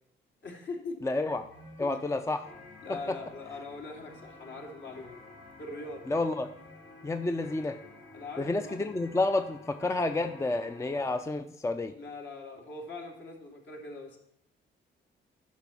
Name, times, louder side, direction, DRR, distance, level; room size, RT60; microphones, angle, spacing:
voice 1, 0.4-1.1 1.8-2.0 2.8-5.2 5.6-6.1 8.1-8.9 11.9-14.2, left 3 dB, 60° left, 0 dB, 2.7 m, -42 dB
voice 2, 1.0-1.5 1.8-2.5 2.9-3.2 6.1-6.5 7.0-7.8 8.4-11.9, left 2 dB, 15° left, 8 dB, 0.5 m, -30 dB
sound 1, 1.3-11.2, left 3 dB, 80° left, 2.4 m, -52 dB
10.5 x 5.3 x 7.1 m, 0.72 s
cardioid pair, 90°, 20 cm